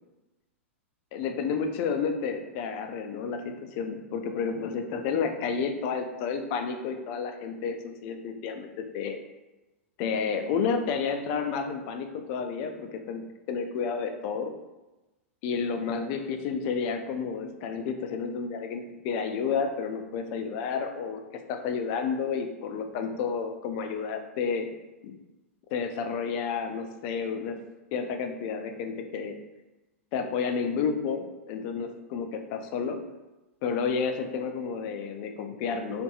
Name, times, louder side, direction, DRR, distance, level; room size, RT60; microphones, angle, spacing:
voice 1, 1.1-9.2 10.0-14.5 15.4-21.2 21.5-24.7 25.0-25.1 25.7-27.6 27.9-29.4 30.1-33.0 33.6-36.0, left 5 dB, 45° left, 6 dB, 0.3 m, -31 dB
2.6 x 2.5 x 2.3 m, 1.1 s
hypercardioid pair, 110°, 7 cm